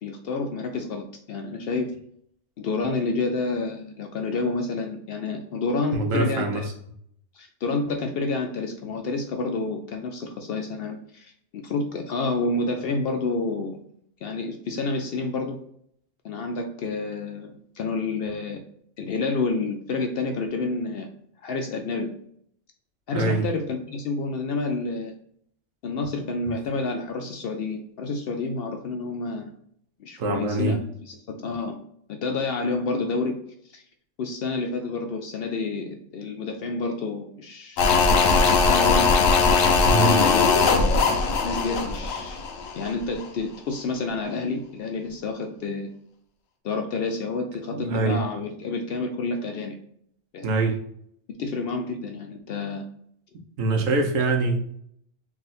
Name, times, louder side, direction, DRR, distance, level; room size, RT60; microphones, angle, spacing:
voice 1, 0.0-1.9 2.6-6.7 7.3-13.8 14.2-15.6 16.2-18.6 19.0-21.1 21.4-22.1 23.1-25.1 25.8-29.5 30.0-30.8 31.1-31.8 32.1-33.4 33.7-33.8 34.2-37.9 38.3-39.1 40.0-41.0 41.4-42.4 42.8-45.9 46.6-49.8 50.3-50.5 51.4-52.9, left 3 dB, 65° left, 4 dB, 0.6 m, -29 dB
voice 2, 5.9-6.6 23.1-23.5 30.2-30.8 39.9-40.2 47.7-48.2 50.4-50.8 53.6-54.6, right 3 dB, 85° right, 3 dB, 1.2 m, -24 dB
sound 1, 37.8-42.9 43.2-43.3, left 4 dB, 85° left, 1.1 m, -20 dB
3.7 x 2.4 x 3.9 m, 0.68 s
omnidirectional pair, 1.3 m